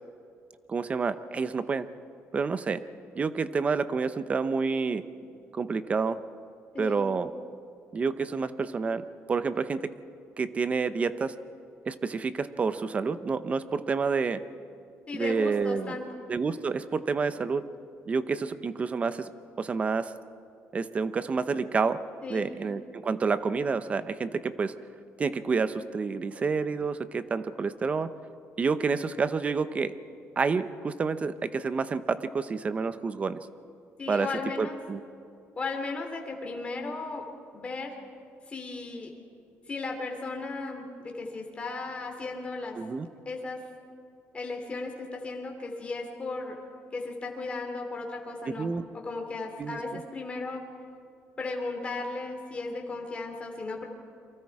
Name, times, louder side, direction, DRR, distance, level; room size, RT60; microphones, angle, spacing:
voice 1, 0.7-1.9 2.3-2.9 3.1-5.0 5.5-6.2 6.8-7.3 7.9-9.9 10.4-11.4 11.9-14.4 15.1-16.0 16.3-17.7 18.1-19.3 19.6-20.2 20.7-22.0 22.3-24.8 25.2-28.1 28.6-30.0 30.4-33.5 34.1-34.3 34.6-35.0 42.8-43.1 48.5-48.9 49.6-50.0, right 5 dB, 25° right, 13 dB, 0.8 m, -29 dB
voice 2, 6.7-7.1 15.1-16.2 22.2-22.6 34.0-34.8 35.6-37.2 37.5-37.9 38.5-39.1 39.7-42.8 43.2-43.6 44.3-46.6 46.9-50.6 51.4-53.9, left 3 dB, 25° left, 2 dB, 3.1 m, -36 dB
29.5 x 23.5 x 4.8 m, 2.4 s
cardioid pair, 150°, 5 cm